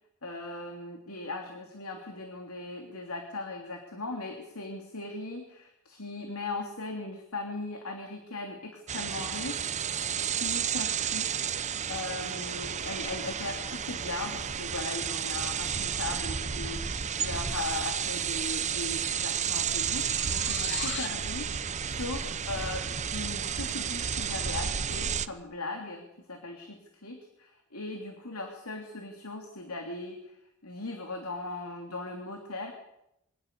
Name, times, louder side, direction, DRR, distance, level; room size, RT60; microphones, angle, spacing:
voice 1, 0.2-11.3 11.9-30.4 30.6-32.7, left 2 dB, 80° left, 3 dB, 3.2 m, -38 dB
sound 1, 8.9-25.3, right 8 dB, 35° right, 0.7 m, -32 dB
sound 2, 18.8-21.2, left 9 dB, 55° left, 0.9 m, -41 dB
24.5 x 18.5 x 6.9 m, 0.83 s
head